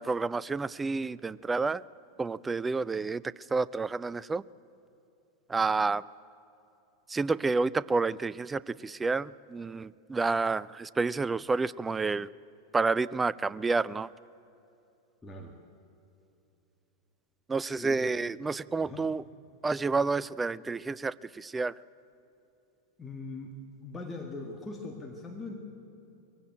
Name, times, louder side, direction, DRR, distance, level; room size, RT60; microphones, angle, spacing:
voice 1, 0.0-1.8 2.2-3.2 3.5-4.4 5.5-6.0 7.1-12.3 12.7-14.1 17.5-19.2 19.6-21.7, right 4 dB, 15° right, 21 dB, 0.4 m, -29 dB
voice 2, 15.2-15.5 17.8-18.0 18.8-19.0 23.0-23.5 23.8-25.5, left 3 dB, 15° left, 2 dB, 1.9 m, -41 dB
21.5 x 16.0 x 9.1 m, 2.8 s
figure-of-eight pair, 90°, 0 cm